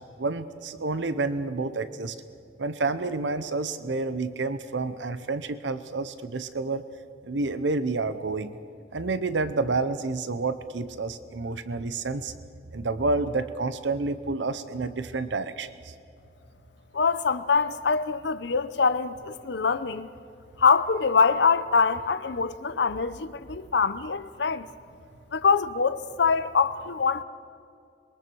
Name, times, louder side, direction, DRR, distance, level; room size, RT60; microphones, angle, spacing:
voice 1, 0.2-2.2 2.6-6.8 7.2-8.6 8.9-12.3 12.7-15.9, right 3 dB, 90° right, 0.8 m, -29 dB
voice 2, 16.9-20.1 20.6-24.7 25.3-27.2, left 5 dB, 75° left, 0.7 m, -24 dB
26.5 x 22.5 x 4.6 m
head